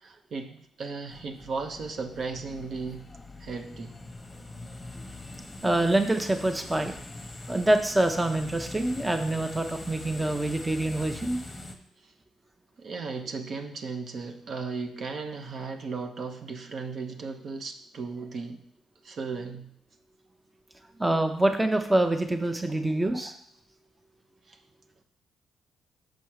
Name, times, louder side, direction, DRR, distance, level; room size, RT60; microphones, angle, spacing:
voice 1, 0.0-3.0 3.4-4.0 12.8-18.6 19.0-19.7 24.5-24.6, right 4 dB, 55° right, 5 dB, 0.7 m, -36 dB
sound 1, 1.1-11.8, left 2 dB, 15° left, 0.9 m, -43 dB
voice 2, 5.6-6.9 7.5-11.4 21.0-23.3, right 1 dB, 15° right, 6 dB, 0.6 m, -25 dB
6.3 x 4.5 x 4.7 m, 0.64 s
cardioid pair, 90°, 0 cm